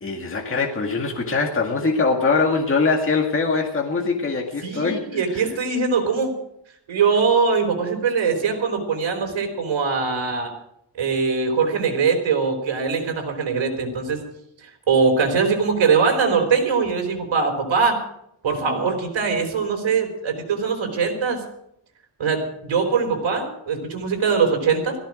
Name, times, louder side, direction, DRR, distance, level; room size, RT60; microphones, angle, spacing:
voice 1, 0.0-5.4, left 4 dB, 30° left, 1 dB, 2.0 m, -22 dB
voice 2, 4.6-6.3 6.9-10.5 11.0-14.2 14.9-18.0 18.4-21.4 22.2-25.0, right 5 dB, 85° right, 4 dB, 4.7 m, -22 dB
17.5 x 15.5 x 5.1 m, 0.74 s
wide cardioid pair, 150°, 45 cm